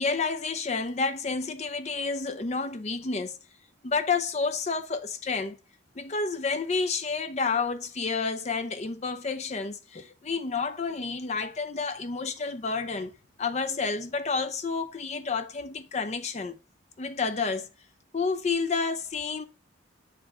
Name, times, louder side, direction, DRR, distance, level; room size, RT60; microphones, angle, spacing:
voice 1, 0.0-3.4 3.8-5.6 6.0-13.1 13.4-16.6 17.0-17.7 18.1-19.5, left 4 dB, 35° left, 0.5 m, -30 dB
7.5 x 3.5 x 4.3 m
head